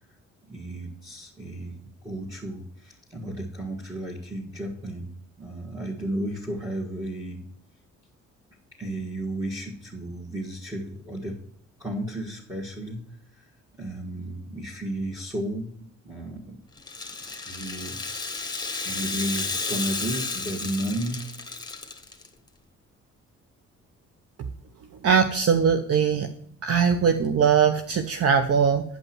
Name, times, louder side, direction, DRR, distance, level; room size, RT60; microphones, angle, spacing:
voice 1, 0.4-7.4 8.8-11.4 11.8-16.6 17.5-18.3 18.8-21.4, right 1 dB, 10° right, -3 dB, 2.1 m, -33 dB
Rattle (instrument), 16.8-22.3, left 3 dB, 15° left, 1.6 m, -32 dB
voice 2, 25.0-26.3 26.6-28.8, right 7 dB, 50° right, 7 dB, 0.8 m, -21 dB
9.4 x 5.4 x 6.1 m, 0.62 s
cardioid pair, 90°, 30 cm